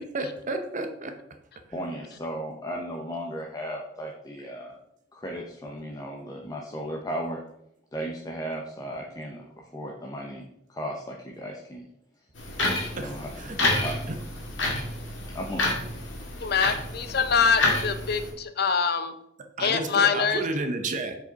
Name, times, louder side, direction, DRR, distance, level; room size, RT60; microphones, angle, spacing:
voice 1, 0.1-1.1 13.0-13.6 14.1-14.2 19.6-21.2, right 2 dB, 45° right, 6 dB, 0.7 m, -31 dB
voice 2, 1.7-4.8 5.1-7.4 7.9-10.4 10.7-11.9 13.0-14.1 15.3-15.7, equal, 20° left, 0 dB, 0.7 m, -35 dB
sound 1, 12.4-18.3, left 2 dB, 80° left, 2.0 m, -29 dB
voice 3, 16.4-19.2 19.6-20.4, left 6 dB, 55° left, 10 dB, 0.6 m, -24 dB
7.0 x 5.1 x 4.0 m, 0.77 s
head